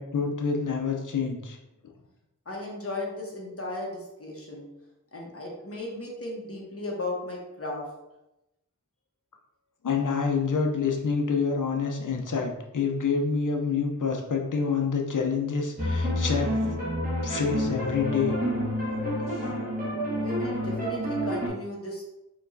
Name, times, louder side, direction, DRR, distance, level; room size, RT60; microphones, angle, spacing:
voice 1, 0.0-1.6 9.8-16.5 17.2-18.4 19.3-19.5, left 5 dB, 65° left, 1 dB, 0.7 m, -27 dB
voice 2, 2.4-4.7 5.1-7.9 20.1-22.0, left 2 dB, 45° left, -3 dB, 1.1 m, -36 dB
sound 1, 15.8-21.5, equal, 25° right, 1.2 m, -28 dB
4.5 x 3.0 x 2.7 m, 0.91 s
wide cardioid pair, 90°, 33 cm